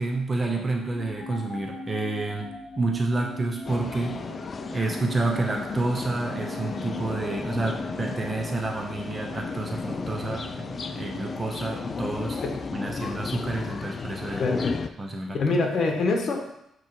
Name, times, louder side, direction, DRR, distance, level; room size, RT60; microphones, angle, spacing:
voice 1, 0.0-2.5 2.8-4.4 4.7-12.4 12.7-14.4 15.0-15.6, right 2 dB, 25° right, 1 dB, 0.8 m, -29 dB
sound 1, 0.9-13.0, left 1 dB, 20° left, 2.3 m, -42 dB
sound 2, 3.6-14.9, left 5 dB, 40° left, 0.4 m, -34 dB
voice 2, 14.4-14.7 15.3-16.5, left 3 dB, 55° left, 3 dB, 1.2 m, -25 dB
8.1 x 3.1 x 4.6 m, 0.80 s
cardioid pair, 90°, 0 cm